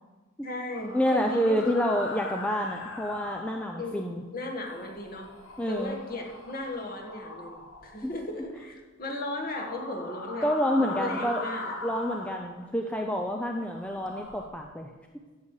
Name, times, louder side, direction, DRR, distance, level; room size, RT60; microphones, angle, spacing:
voice 1, 0.4-1.8 3.8-5.3 5.7-10.5 10.8-11.8, left 2 dB, 40° left, 1 dB, 1.6 m, -36 dB
sound 1, 0.7-4.1 4.5-8.5 9.4-13.0 13.5-14.5, left 2 dB, 65° left, 1.5 m, -41 dB
voice 2, 0.9-4.2 5.6-6.0 8.0-8.1 10.4-11.4 11.8-14.9, equal, 5° left, 2 dB, 0.5 m, -28 dB
13.5 x 8.3 x 4.8 m, 1.3 s
head